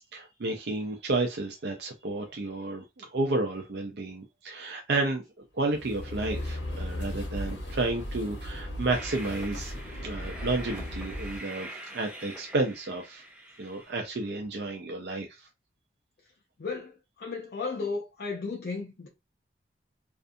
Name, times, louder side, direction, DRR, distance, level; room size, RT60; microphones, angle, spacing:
voice 1, 0.1-5.2 5.5-9.7 10.0-13.2 13.6-15.5, right 2 dB, 65° right, 0.4 m, -31 dB
sound 1, 5.6-11.4, left 1 dB, 80° left, 0.8 m, -37 dB
Train, 8.9-13.9, right 1 dB, 5° right, 0.6 m, -44 dB
voice 2, 16.6-19.1, left 4 dB, 60° left, 0.5 m, -34 dB
2.5 x 2.4 x 2.5 m
head